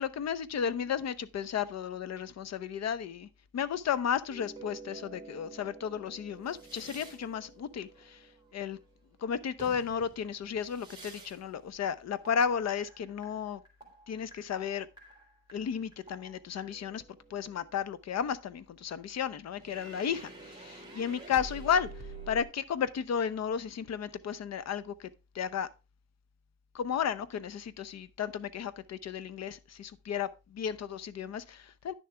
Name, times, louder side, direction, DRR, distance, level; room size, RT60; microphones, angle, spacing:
voice 1, 0.0-3.3 3.5-8.2 8.5-8.8 9.2-13.6 14.1-14.9 15.5-17.0 17.3-21.9 22.3-25.1 25.3-25.7 26.7-31.9, left 7 dB, 45° left, 0.8 m, -33 dB
sound 1, 4.3-9.2 9.6-11.5 11.8-18.0 19.6-22.4, right 3 dB, 10° right, 2.9 m, -49 dB
10.0 x 6.7 x 3.4 m
cardioid pair, 130°, 36 cm